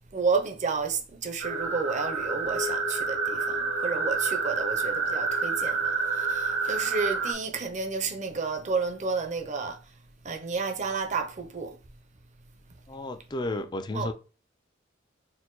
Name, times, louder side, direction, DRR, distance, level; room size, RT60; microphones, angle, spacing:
voice 1, 0.1-9.8 10.2-11.8 13.9-14.1, right 4 dB, 40° right, 0.7 m, -31 dB
sound 1, 1.4-7.3, right 4 dB, 70° right, 1.5 m, -28 dB
voice 2, 12.9-14.1, left 2 dB, 20° left, 0.4 m, -32 dB
4.3 x 2.2 x 3.8 m
head